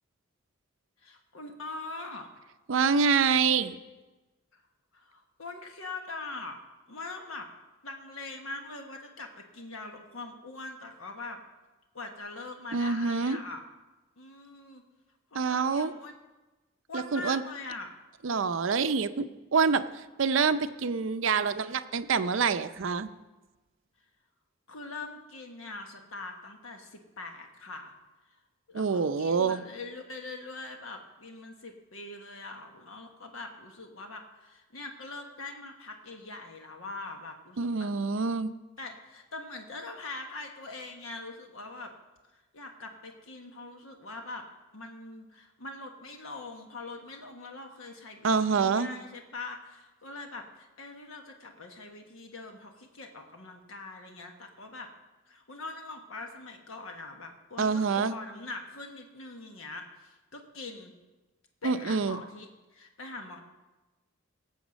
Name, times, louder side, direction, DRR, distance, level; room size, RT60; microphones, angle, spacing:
voice 1, 1.0-2.3 4.5-4.6 4.9-6.6 6.9-7.5 7.8-11.4 11.9-13.6 14.2-14.8 15.3-16.1 16.9-17.9 24.7-27.9 28.7-37.9 38.8-41.9 42.5-44.5 44.7-54.9 55.3-60.9 61.6-63.4, left 3 dB, 85° left, 4 dB, 1.3 m, -42 dB
voice 2, 2.7-3.8 12.7-13.4 15.3-15.9 16.9-17.4 18.2-23.1 28.7-29.6 37.6-38.5 48.2-48.9 57.6-58.1 61.6-62.2, right 5 dB, 65° right, 12 dB, 0.5 m, -26 dB
18.0 x 7.2 x 5.2 m, 1.1 s
head